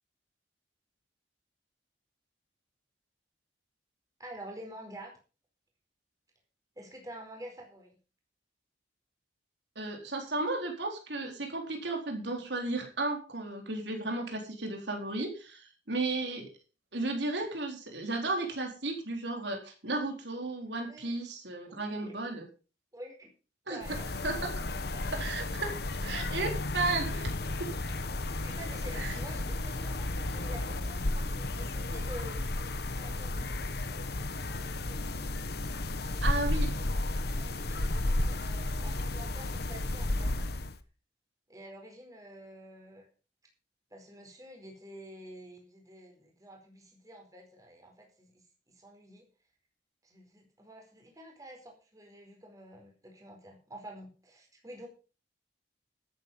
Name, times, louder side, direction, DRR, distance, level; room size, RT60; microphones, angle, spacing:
voice 1, 4.2-5.2 6.8-8.0 20.9-21.1 21.7-22.2 22.9-23.3 23.7-24.1 24.9-25.0 28.4-32.4 32.8-35.2 36.0-36.8 37.3-40.5 41.5-43.1 43.9-49.3 50.0-54.9, right 1 dB, 20° right, 2 dB, 4.6 m, -49 dB
voice 2, 9.8-16.5 16.9-22.5 23.7-24.0 24.2-24.5 25.1-25.7 26.0-27.3 27.6-27.7 29.0-29.2 36.2-36.7, right 2 dB, 70° right, 3 dB, 4.0 m, -34 dB
sound 1, 23.8-40.8, left 2 dB, 60° left, 1.2 m, -33 dB
sound 2, 24.0-32.5, left 1 dB, 85° left, 7.2 m, -50 dB
13.0 x 9.5 x 5.6 m, 0.35 s
head